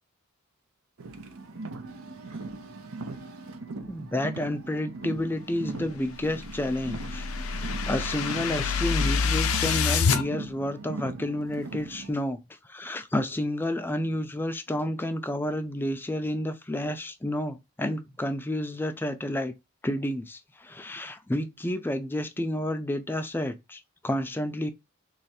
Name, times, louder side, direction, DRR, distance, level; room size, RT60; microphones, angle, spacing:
Car, 1.0-12.1, right 3 dB, 90° right, 0.6 m, -40 dB
voice 1, 3.9-12.4 12.7-19.5 19.8-24.7, left 1 dB, 10° left, 0.3 m, -30 dB
sound 1, 6.2-10.2, left 5 dB, 90° left, 0.5 m, -27 dB
3.2 x 2.4 x 4.1 m
head